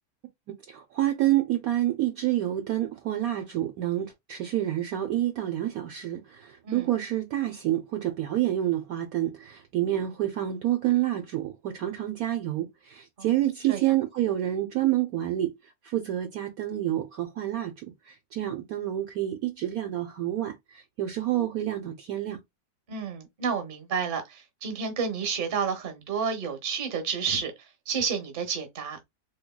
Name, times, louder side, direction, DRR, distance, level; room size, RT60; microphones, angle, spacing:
voice 1, 0.7-15.5 15.8-22.4, right 13 dB, 70° right, 1.0 m, -28 dB
voice 2, 22.9-27.5 27.9-29.0, right 6 dB, 40° right, 0.9 m, -30 dB
3.5 x 2.9 x 2.2 m
omnidirectional pair, 1.8 m